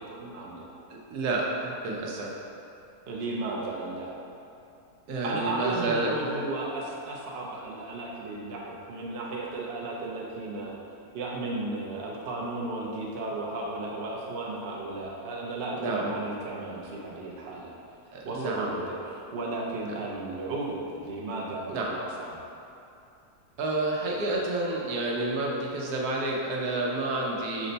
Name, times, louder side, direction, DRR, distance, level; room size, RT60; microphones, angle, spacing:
voice 1, 0.0-0.8 3.1-4.2 5.2-10.7 11.1-17.7 18.2-22.3, right 2 dB, 55° right, -3 dB, 0.7 m, -34 dB
voice 2, 0.9-2.3 5.1-6.1 15.8-16.1 18.1-18.7 21.7-21.9 23.6-27.7, right 2 dB, 80° right, -2 dB, 1.2 m, -29 dB
5.9 x 2.1 x 3.9 m, 2.7 s
omnidirectional pair, 1.6 m